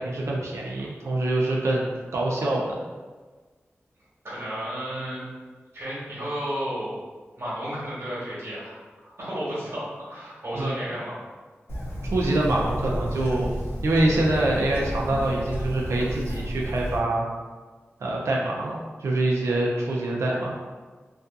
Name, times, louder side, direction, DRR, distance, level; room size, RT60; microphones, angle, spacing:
voice 1, 0.0-2.8 10.5-10.8 12.1-13.5 13.8-17.2 18.0-20.5, right 2 dB, 85° right, -3 dB, 0.4 m, -25 dB
voice 2, 4.2-5.2 5.7-6.9 7.4-8.8 9.2-11.1, equal, 60° right, -9 dB, 1.1 m, -32 dB
Bird, 11.7-17.0, equal, 55° left, 0.6 m, -32 dB
2.6 x 2.3 x 2.3 m, 1.4 s
cardioid pair, 40°, 5 cm